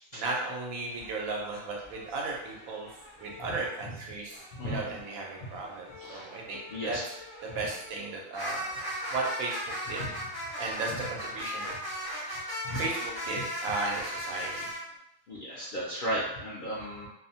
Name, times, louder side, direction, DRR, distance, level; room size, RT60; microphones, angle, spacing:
voice 1, 0.1-2.9 3.2-7.0 7.4-8.7 9.1-9.6 9.9-10.1 10.6-11.7 12.0-12.4 12.8-14.7, right 3 dB, 90° right, -1 dB, 1.1 m, -35 dB
sound 1, 0.9-3.8 4.3-14.8, equal, 25° right, 0.5 m, -39 dB
voice 2, 4.6-5.0 6.0-6.3 6.7-7.0 10.0-10.1 10.6-11.0 12.6-12.9 15.3-17.1, equal, 60° left, -7 dB, 0.5 m, -35 dB
2.6 x 2.1 x 2.7 m, 0.83 s
omnidirectional pair, 1.4 m